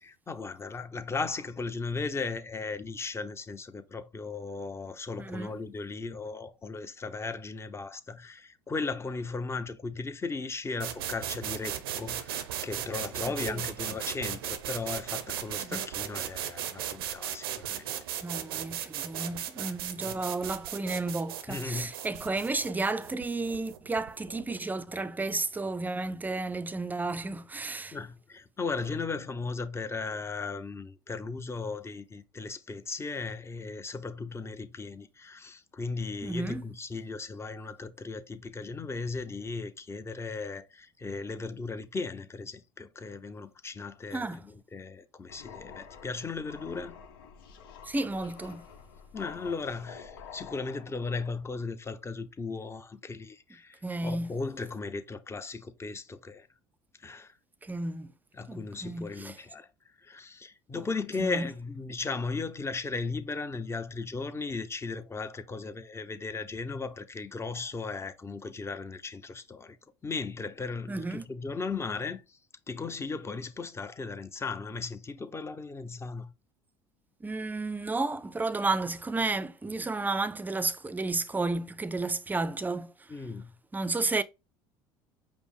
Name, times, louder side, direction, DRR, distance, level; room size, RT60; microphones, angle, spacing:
voice 1, 0.0-17.9 20.0-20.2 21.5-21.9 27.9-46.9 49.1-56.5 57.0-57.3 58.3-59.7 60.0-69.8 70.0-72.4 72.7-76.3 83.1-83.5, left 4 dB, 20° left, 0.7 m, -36 dB
voice 2, 5.2-5.5 13.5-13.6 15.6-15.8 18.2-28.0 36.2-36.6 44.1-44.4 47.8-48.7 53.8-54.3 57.6-58.1 58.5-59.4 61.2-61.5 70.9-71.2 77.2-82.9 83.7-84.2, right 3 dB, 15° right, 0.5 m, -32 dB
sound 1, 10.8-24.5, right 10 dB, 85° right, 0.6 m, -37 dB
sound 2, 45.3-51.3, left 6 dB, 80° left, 0.9 m, -48 dB
5.2 x 2.1 x 4.8 m
hypercardioid pair, 75°, 12 cm